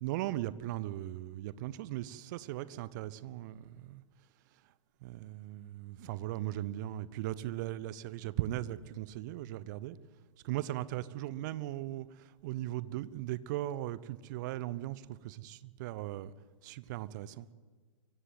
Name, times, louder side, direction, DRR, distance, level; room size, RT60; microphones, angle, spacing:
voice 1, 0.0-4.0 5.0-10.0 10.4-16.3 16.6-17.5, right 14 dB, 35° right, 0.8 m, -38 dB
24.5 x 15.5 x 7.9 m
figure-of-eight pair, 115°, 17 cm